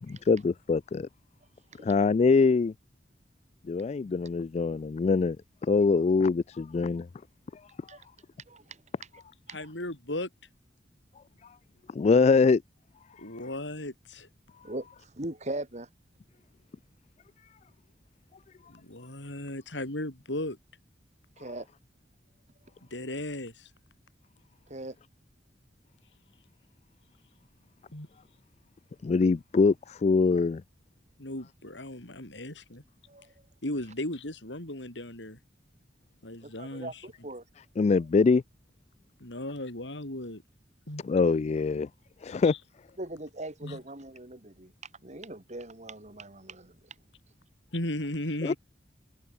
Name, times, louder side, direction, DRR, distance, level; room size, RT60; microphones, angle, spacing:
voice 1, 0.0-1.1 1.8-2.7 3.6-5.4 5.6-7.1 11.9-12.6 29.0-30.6 37.8-38.4 41.0-41.9 42.2-42.5 48.4-48.5, left 4 dB, 40° left, 0.3 m, -23 dB
voice 2, 8.5-8.8 9.5-9.7 14.6-15.9 21.4-21.7 24.7-25.0 33.1-33.3 36.4-37.4 43.0-44.7 45.0-46.7, right 1 dB, 40° right, 4.4 m, -40 dB
voice 3, 9.5-10.3 13.2-14.3 18.7-20.6 22.9-23.7 27.9-28.1 31.2-32.8 33.6-35.4 36.2-37.0 39.2-40.4 40.9-41.0 42.4-42.6 43.6-43.8 47.7-48.6, left 1 dB, 80° left, 5.6 m, -36 dB
head